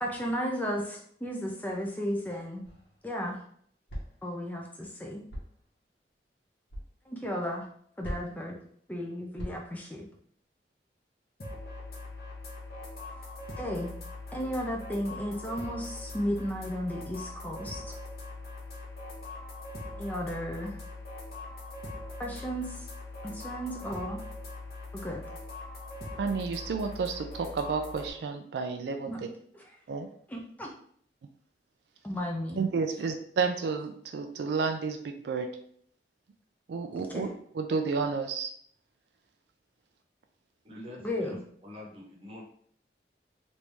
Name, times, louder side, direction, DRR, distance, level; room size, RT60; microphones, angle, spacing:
voice 1, 0.0-2.7 3.0-3.4 4.2-5.2 7.1-7.7 8.0-8.5 8.9-10.1 13.6-13.9 14.3-18.0 19.9-20.8 22.2-22.9 23.2-24.2 24.9-25.2 29.0-29.2 29.5-29.6 30.3-30.7 32.0-32.6 37.0-37.3 41.0-41.4, equal, 10° left, -1 dB, 0.4 m, -34 dB
sound 1, 2.6-3.0 3.9-4.3 5.3-5.6 6.7-6.9 8.0-8.5 9.4-9.8, equal, 90° left, 1.2 m, -40 dB
sound 2, 11.4-28.1, left 2 dB, 60° left, 0.9 m, -42 dB
voice 2, 26.2-29.3 29.9-30.1 32.6-35.5 36.7-38.5, right 4 dB, 75° right, 6 dB, 0.3 m, -31 dB
voice 3, 40.6-41.4 41.6-42.4, left 1 dB, 35° right, -2 dB, 0.9 m, -45 dB
3.1 x 2.6 x 3.3 m, 0.63 s
head